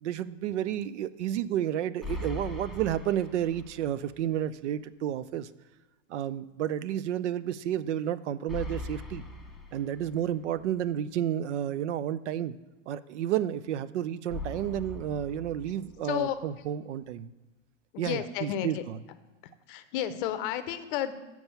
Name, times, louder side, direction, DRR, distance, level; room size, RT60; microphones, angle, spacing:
voice 1, 0.0-5.5 6.1-9.2 9.7-12.5 12.9-17.3 18.0-18.8, right 11 dB, 65° right, 16 dB, 0.5 m, -31 dB
sound 1, 2.0-4.0 4.4-4.5 8.5-10.5 14.3-16.3, left 2 dB, ahead, 0.5 m, -40 dB
voice 2, 16.0-16.4 17.9-18.8 19.7-21.1, left 11 dB, 45° left, 11 dB, 0.6 m, -31 dB
7.1 x 4.6 x 6.9 m, 1.1 s
hypercardioid pair, 120°, 38 cm